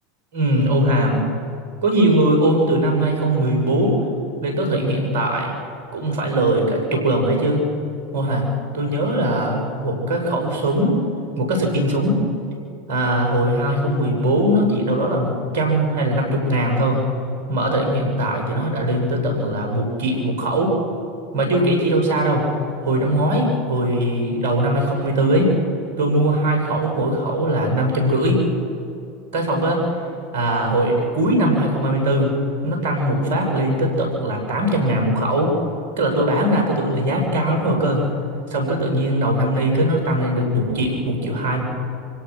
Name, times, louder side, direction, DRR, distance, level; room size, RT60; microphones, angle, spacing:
voice 1, 0.3-1.2 1.8-4.0 4.4-5.5 5.9-7.6 8.1-8.5 8.7-10.9 11.4-12.2 12.9-17.0 17.5-20.7 21.3-22.4 22.8-25.5 26.0-28.4 29.3-29.9 30.3-32.3 32.6-35.5 36.0-38.0 38.5-41.6, right 1 dB, 70° right, 1 dB, 6.5 m, -20 dB
26.0 x 17.5 x 6.4 m, 2.5 s
hypercardioid pair, 85°, 0 cm